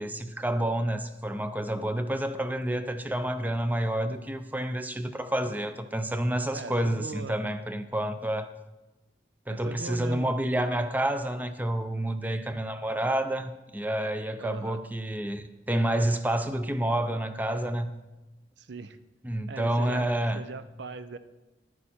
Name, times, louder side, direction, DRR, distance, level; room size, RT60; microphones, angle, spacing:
voice 1, 0.0-8.5 9.5-17.9 19.2-20.4, right 1 dB, 10° right, 9 dB, 0.5 m, -29 dB
voice 2, 6.5-7.6 9.5-10.3 14.4-14.8 18.6-19.0 19.5-20.1 20.3-21.2, right 3 dB, 70° right, 12 dB, 0.6 m, -39 dB
11.5 x 9.3 x 4.3 m, 1.1 s
head